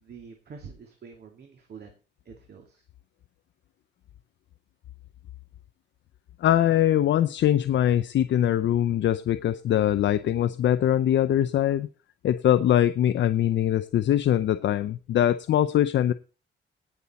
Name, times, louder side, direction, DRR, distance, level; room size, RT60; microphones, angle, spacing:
voice 1, 0.0-2.0 2.3-2.8, right 6 dB, 55° right, 3 dB, 2.1 m, -46 dB
voice 2, 6.4-11.9 12.2-16.1, left 11 dB, 70° left, 12 dB, 0.6 m, -22 dB
18.0 x 7.0 x 4.1 m, 0.35 s
wide cardioid pair, 160°, 20 cm